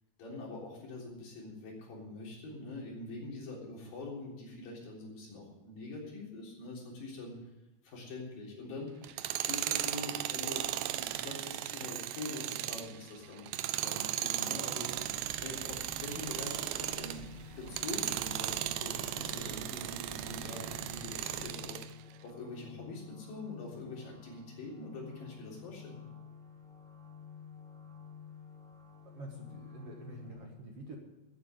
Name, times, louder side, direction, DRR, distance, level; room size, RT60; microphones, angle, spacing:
voice 1, 0.2-7.4 7.8-9.2 9.5-13.5 13.8-17.2 17.6-21.9 22.2-26.0, left 2 dB, 75° left, -3 dB, 5.5 m, -44 dB
Tools, 9.0-17.2 17.7-21.9, right 13 dB, 80° right, 1.8 m, -36 dB
sound 1, 11.9-30.3, left 7 dB, ahead, 1.9 m, -52 dB
sound 2, 14.9-21.5, right 2 dB, 20° right, 3.4 m, -51 dB
voice 2, 29.0-31.0, right 1 dB, 50° right, 1 dB, 2.1 m, -47 dB
14.5 x 8.0 x 8.1 m, 0.98 s
omnidirectional pair, 4.2 m